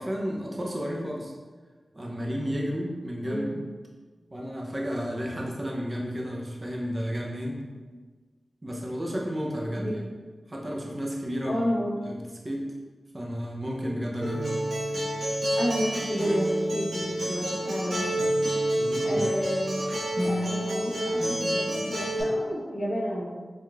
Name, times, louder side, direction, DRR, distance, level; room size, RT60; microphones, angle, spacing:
voice 1, 0.0-1.3 1.9-3.6 4.3-7.6 8.6-10.0 10.5-11.6 12.0-12.7 13.1-14.5 18.8-19.2, equal, 30° right, -2 dB, 0.6 m, -32 dB
voice 2, 3.2-3.6 9.7-10.0 11.4-12.1 15.6-18.2 19.0-19.8 20.2-23.3, equal, 50° left, -9 dB, 1.0 m, -31 dB
Acoustic guitar, 14.2-22.2, right 1 dB, 60° right, 1.2 m, -28 dB
4.6 x 3.0 x 2.3 m, 1.4 s
wide cardioid pair, 90°, 0 cm